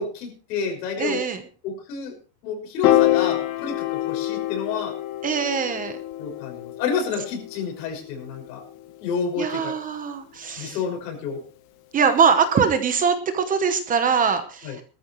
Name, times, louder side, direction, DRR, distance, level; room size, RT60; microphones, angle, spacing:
voice 1, 0.0-1.2 1.6-2.1 2.4-5.0 6.2-8.6 9.0-9.7 10.6-11.4 14.6-14.8, left 5 dB, 85° left, 3 dB, 5.9 m, -29 dB
voice 2, 1.0-1.4 5.2-6.0 9.4-10.8 11.9-14.8, right 6 dB, 15° right, 9 dB, 0.9 m, -22 dB
Piano, 2.8-9.2, left 15 dB, 60° left, 1.7 m, -26 dB
20.0 x 13.5 x 3.1 m, 0.35 s
supercardioid pair, 175°, 48 cm